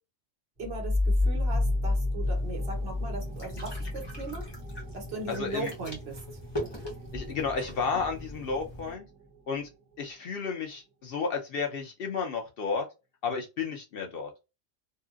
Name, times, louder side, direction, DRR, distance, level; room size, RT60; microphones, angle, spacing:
sound 1, 0.6-9.9, left 2 dB, 15° right, 1.8 m, -32 dB
voice 1, 0.6-4.5 4.9-6.2, right 3 dB, 55° right, 3 dB, 1.1 m, -38 dB
sound 2, 2.2-8.9, equal, 25° left, 0.9 m, -41 dB
voice 2, 5.3-5.7 7.1-9.1 9.5-9.7 10.0-12.9 13.2-14.3, left 5 dB, 60° left, 3 dB, 0.7 m, -32 dB
2.8 x 2.7 x 2.3 m, 0.27 s
omnidirectional pair, 1.3 m